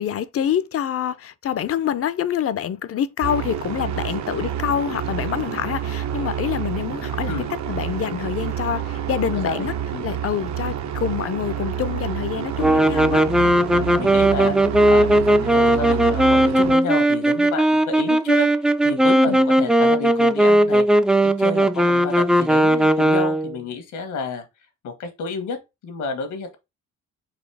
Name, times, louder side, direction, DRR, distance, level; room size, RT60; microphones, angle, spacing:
voice 1, 0.0-7.3 7.7-9.7 10.0-13.3 19.1-19.4, left 9 dB, 50° left, 0.6 m, -26 dB
sound 1, 3.2-16.8, right 9 dB, 65° right, 0.8 m, -28 dB
voice 2, 9.3-10.1 13.7-18.5 18.8-24.4 24.8-26.6, left 4 dB, 80° left, 1.5 m, -30 dB
sound 2, 12.6-23.6, right 1 dB, 5° right, 0.3 m, -17 dB
4.2 x 2.7 x 4.7 m
cardioid pair, 90°, 30 cm